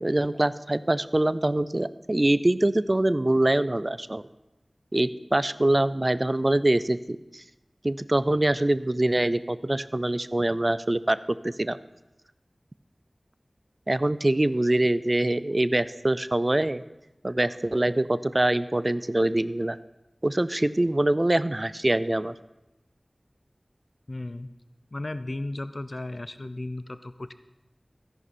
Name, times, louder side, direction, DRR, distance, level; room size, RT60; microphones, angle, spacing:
voice 1, 0.0-4.2 4.9-7.4 7.8-11.8 13.9-16.8 17.2-19.8 20.2-22.3, right 1 dB, 40° right, 15 dB, 0.4 m, -24 dB
voice 2, 24.1-24.5 24.9-27.3, left 2 dB, 55° left, 12 dB, 0.5 m, -35 dB
14.0 x 10.5 x 4.2 m, 0.97 s
wide cardioid pair, 45°, 0 cm